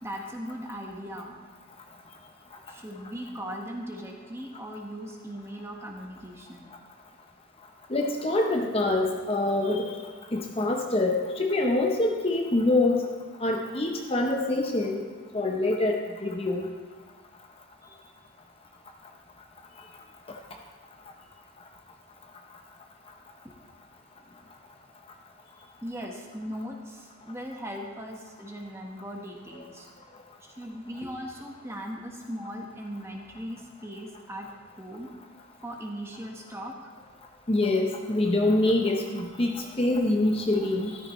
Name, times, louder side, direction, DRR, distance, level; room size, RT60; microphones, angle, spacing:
voice 1, 0.0-1.4 2.7-6.7 17.8-18.1 23.4-23.5 25.8-29.9 30.4-35.1 35.6-36.9, equal, 15° right, 0 dB, 1.2 m, -39 dB
voice 2, 7.9-9.9 10.3-13.1 13.4-15.0 15.3-16.7 37.5-41.0, left 2 dB, 30° left, 2 dB, 0.8 m, -25 dB
13.5 x 13.0 x 3.1 m, 1.5 s
head